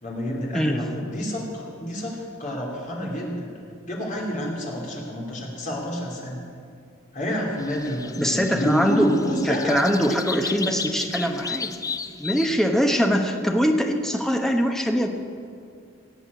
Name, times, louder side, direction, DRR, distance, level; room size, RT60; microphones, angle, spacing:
voice 1, 0.0-3.5 3.9-6.4 7.1-9.8, equal, 40° left, -2 dB, 3.0 m, -28 dB
sound 1, 7.6-12.5, left 5 dB, 15° left, 0.4 m, -34 dB
voice 2, 8.2-9.1 9.5-11.7 12.2-15.1, equal, ahead, 3 dB, 1.0 m, -22 dB
16.0 x 8.3 x 8.3 m, 2.3 s
head